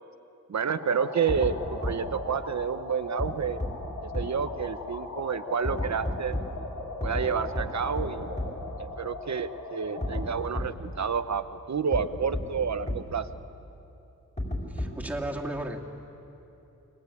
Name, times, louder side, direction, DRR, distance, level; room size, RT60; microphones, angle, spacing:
sound 1, 0.5-10.5, left 3 dB, 70° left, 4.1 m, -40 dB
voice 1, 0.5-3.6 4.0-6.4 7.0-8.3 8.8-13.3, right 6 dB, 60° right, 11 dB, 1.0 m, -29 dB
sound 2, 1.3-1.5 1.8-1.9 3.2-3.3 3.6-3.7 4.1-4.2 5.6-6.4 7.0-7.2 7.5-7.6 8.0-8.1 8.4-8.5 10.0-10.2 10.5-10.6 11.9-12.0 12.3-12.4 12.9-13.0 14.4-15.1, left 1 dB, 20° left, 5.0 m, -30 dB
voice 2, 14.7-15.8, right 1 dB, 5° right, -1 dB, 2.5 m, -34 dB
29.5 x 22.0 x 8.5 m, 2.8 s
wide cardioid pair, 125°, 31 cm